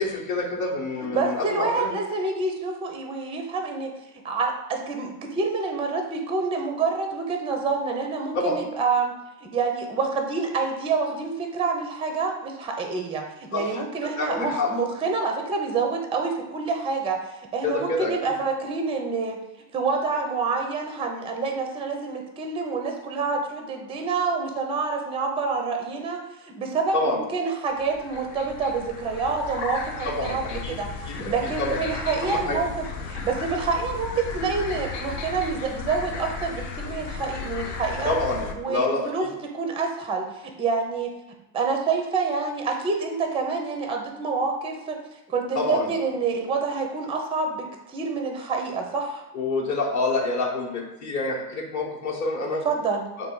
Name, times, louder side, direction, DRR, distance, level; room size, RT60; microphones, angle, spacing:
voice 1, 0.0-1.9 8.3-8.5 13.5-14.7 17.6-18.1 26.9-27.2 30.0-30.7 31.1-31.2 31.6-31.8 32.2-32.6 38.0-39.3 45.5-45.9 49.3-52.7 53.2-53.3, left 2 dB, 35° left, 0 dB, 0.8 m, -27 dB
voice 2, 1.1-3.9 4.2-17.2 17.5-19.4 19.7-30.9 31.1-38.2 38.6-39.3 39.5-41.1 41.5-45.0 45.3-49.2 52.6-53.0, right 4 dB, 15° right, 4 dB, 0.4 m, -27 dB
sound 1, 27.7-38.5, left 5 dB, 70° left, 0.6 m, -35 dB
3.3 x 2.3 x 3.7 m, 0.94 s
hypercardioid pair, 95°, 48 cm